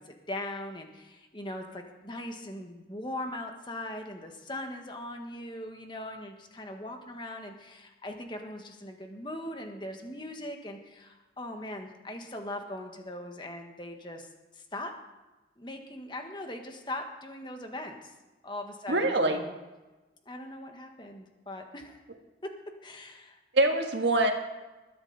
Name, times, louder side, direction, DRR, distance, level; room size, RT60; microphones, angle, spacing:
voice 1, 0.0-14.3 14.5-14.9 15.6-18.0 18.4-19.5 20.2-22.0 22.8-23.4, left 1 dB, 25° left, 4 dB, 1.5 m, -40 dB
voice 2, 18.9-19.4 23.5-24.3, right 2 dB, 80° right, 4 dB, 1.6 m, -24 dB
21.0 x 10.5 x 4.1 m, 1.1 s
head